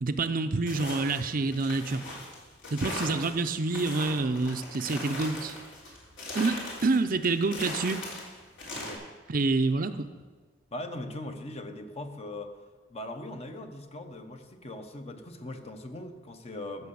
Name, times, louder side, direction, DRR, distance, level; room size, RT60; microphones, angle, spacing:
voice 1, 0.0-2.0 2.7-5.6 6.3-8.0 9.3-10.1, right 3 dB, 50° right, 9 dB, 0.6 m, -27 dB
sound 1, 0.6-9.0, left 2 dB, 70° left, 3.6 m, -39 dB
voice 2, 8.8-9.1 10.7-12.5 12.9-16.9, left 1 dB, 35° left, 7 dB, 0.9 m, -40 dB
14.5 x 6.8 x 6.9 m, 1.4 s
head